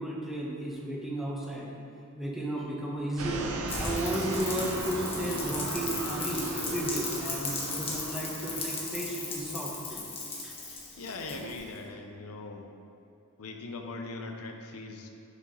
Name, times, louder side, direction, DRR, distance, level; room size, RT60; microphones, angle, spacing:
voice 1, 0.0-1.7 2.1-10.1 10.4-11.0, right 1 dB, ahead, -4 dB, 1.0 m, -34 dB
sound 1, 3.2-10.4 11.0-11.5, right 2 dB, 70° right, 0.7 m, -38 dB
Rain, 3.7-11.8, left 3 dB, 25° left, 1.2 m, -37 dB
voice 2, 11.0-12.7 13.4-15.1, left 3 dB, 75° left, 3 dB, 0.7 m, -40 dB
6.7 x 4.8 x 5.4 m, 2.8 s
head